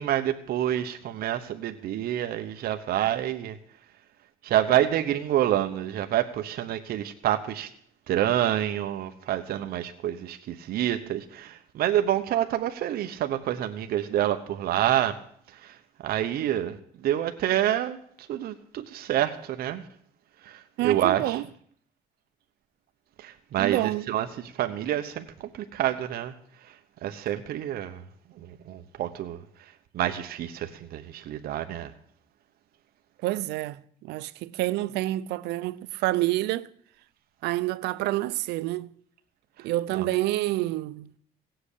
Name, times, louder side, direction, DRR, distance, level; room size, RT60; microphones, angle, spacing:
voice 1, 0.0-3.6 4.4-7.7 8.1-15.2 15.5-15.8 16.0-16.8 17.0-19.9 20.4-21.4 23.2-26.3 27.0-28.0 28.4-29.4 29.9-31.9 39.9-40.1, right 12 dB, 65° right, 1.0 m, -27 dB
voice 2, 20.8-21.4 23.6-24.0 33.2-36.7 37.4-38.9 39.6-41.1, right 17 dB, 85° right, 0.6 m, -28 dB
16.5 x 7.8 x 8.5 m
cardioid pair, 110°, 17 cm